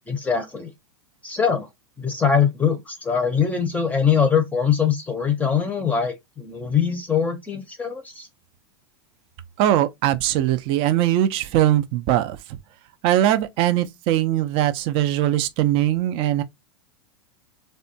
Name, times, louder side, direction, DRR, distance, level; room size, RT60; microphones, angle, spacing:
voice 1, 0.1-0.7 1.2-1.7 2.0-8.3, left 7 dB, 10° left, 0.6 m, -22 dB
voice 2, 9.6-12.6 13.0-16.4, right 13 dB, 40° right, 0.4 m, -21 dB
3.3 x 2.2 x 2.6 m
hypercardioid pair, 120°, 14 cm